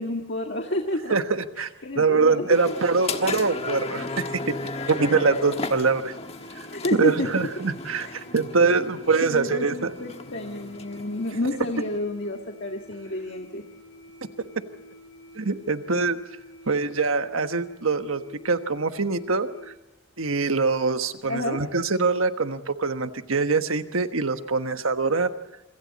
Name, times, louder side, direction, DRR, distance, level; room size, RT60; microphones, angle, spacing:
voice 1, 0.0-1.1 1.8-2.7 6.7-7.5 8.0-8.1 9.2-13.6 21.3-21.6, left 1 dB, 55° left, 2 dB, 1.9 m, -30 dB
voice 2, 1.1-1.7 1.9-4.5 4.9-6.1 7.0-9.9 15.3-16.2 16.7-19.5 20.2-25.3, right 4 dB, 85° right, 9 dB, 1.3 m, -24 dB
sound 1, 2.0-19.7, equal, 80° left, 7.5 m, -49 dB
sound 2, 2.5-12.0, left 3 dB, 30° left, 1.4 m, -35 dB
27.5 x 25.5 x 4.2 m, 0.98 s
head